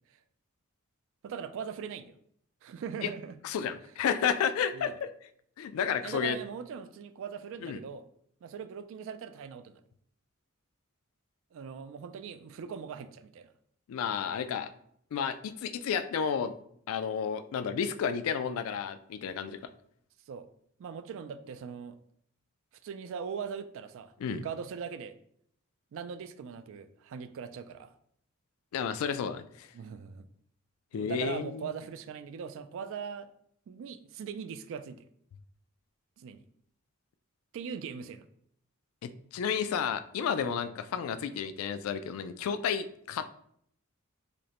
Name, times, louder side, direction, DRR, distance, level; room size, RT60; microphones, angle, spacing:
voice 1, 1.2-2.1 2.6-3.4 4.7-5.0 6.0-8.0 8.4-9.8 11.5-13.5 20.3-20.5 20.8-22.0 22.8-25.1 25.9-27.9 29.7-30.3 30.9-33.3 33.7-35.0 36.2-36.4 37.5-38.3 40.4-40.5, right 6 dB, 65° right, 12 dB, 0.3 m, -40 dB
voice 2, 3.4-5.1 5.6-6.4 7.6-7.8 13.9-14.7 15.1-16.5 16.9-19.6 24.2-24.4 28.7-29.7 30.9-31.7 39.0-43.3, left 7 dB, 70° left, 14 dB, 0.3 m, -31 dB
5.0 x 2.1 x 2.9 m, 0.68 s
head